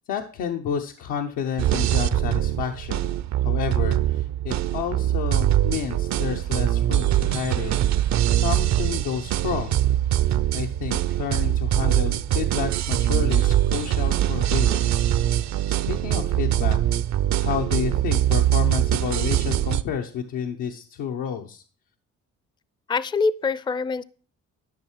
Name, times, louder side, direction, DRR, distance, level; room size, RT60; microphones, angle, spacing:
voice 1, 0.1-3.1 3.4-7.8 8.3-9.8 10.1-16.8 17.4-21.6, left 7 dB, 90° left, 2 dB, 0.9 m, -30 dB
sound 1, 1.6-19.8, right 12 dB, 65° right, 0.6 m, -23 dB
voice 2, 22.9-24.0, left 4 dB, 15° left, 19 dB, 0.4 m, -24 dB
12.0 x 5.7 x 4.5 m, 0.40 s
cardioid pair, 90°, 30 cm